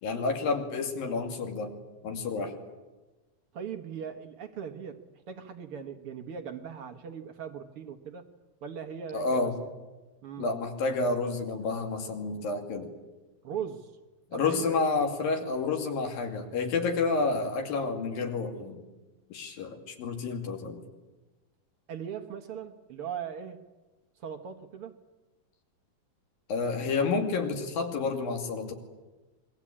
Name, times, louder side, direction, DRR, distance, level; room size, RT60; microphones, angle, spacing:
voice 1, 0.0-1.7 2.0-2.5 9.1-9.6 10.4-12.9 14.3-18.8 19.3-20.8 26.5-28.7, left 4 dB, 75° left, 4 dB, 4.3 m, -30 dB
voice 2, 3.5-5.0 5.3-8.3 8.6-9.4 10.2-10.5 13.4-13.9 14.3-14.7 21.9-23.6 24.2-25.0, right 7 dB, 55° right, 6 dB, 1.7 m, -39 dB
26.5 x 22.0 x 8.7 m, 1.2 s
omnidirectional pair, 4.2 m